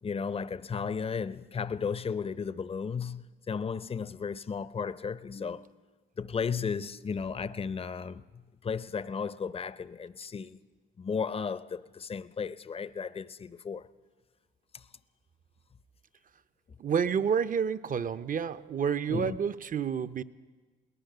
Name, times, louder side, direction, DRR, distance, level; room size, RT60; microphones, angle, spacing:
voice 1, 0.0-5.7 6.2-10.6 11.0-13.9 14.7-14.8 19.1-19.4, left 6 dB, 30° left, 0.6 m, -34 dB
voice 2, 16.8-20.2, right 7 dB, 45° right, 0.7 m, -29 dB
22.0 x 18.0 x 6.7 m
cardioid pair, 90°, 20 cm